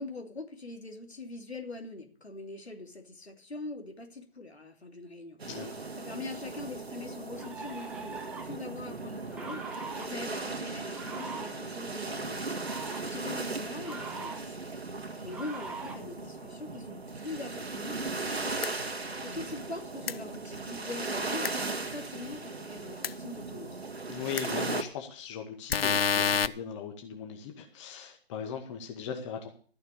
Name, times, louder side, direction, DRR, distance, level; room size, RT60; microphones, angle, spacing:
voice 1, 0.0-5.4 6.0-12.3 13.0-23.7, left 3 dB, 90° left, 3 dB, 3.0 m, -43 dB
sound 1, 5.4-24.8, right 3 dB, 75° right, 2.0 m, -37 dB
voice 2, 5.5-5.8 12.1-12.4 24.1-29.5, left 7 dB, 30° left, 3 dB, 1.9 m, -39 dB
sound 2, 6.5-6.6 7.3-8.6 9.4-10.1 10.9-11.5 12.4-13.0 13.8-14.4 15.3-15.9, right 4 dB, 5° right, 0.6 m, -42 dB
sound 3, 18.6-18.7 20.1-20.2 21.4-21.5 23.0-23.1 24.4-24.5 25.7-26.5, left 7 dB, 65° left, 0.7 m, -26 dB
14.0 x 6.7 x 8.5 m, 0.43 s
figure-of-eight pair, 140°, 31 cm